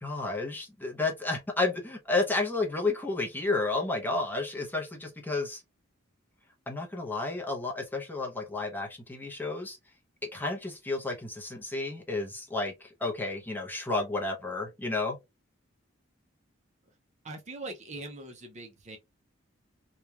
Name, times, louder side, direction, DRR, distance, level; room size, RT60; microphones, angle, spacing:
voice 1, 0.0-5.6 6.7-9.8 10.3-15.2, left 3 dB, 10° left, 0.7 m, -31 dB
voice 2, 17.2-19.0, right 2 dB, 35° right, 0.5 m, -42 dB
3.0 x 2.3 x 2.3 m
head